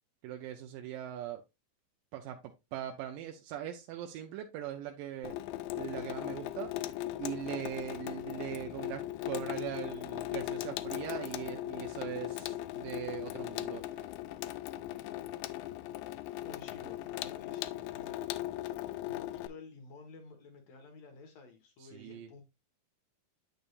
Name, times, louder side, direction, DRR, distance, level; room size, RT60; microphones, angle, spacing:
voice 1, 0.2-1.4 2.1-5.4 5.7-14.1 21.8-22.3, right 11 dB, 85° right, 2.3 m, -41 dB
Water tap faucet / Sink (filling or washing), 5.2-19.5, left 14 dB, 85° left, 2.3 m, -38 dB
voice 2, 16.4-18.2 19.1-22.4, left 4 dB, 60° left, 2.3 m, -52 dB
8.8 x 6.6 x 2.4 m
omnidirectional pair, 4.0 m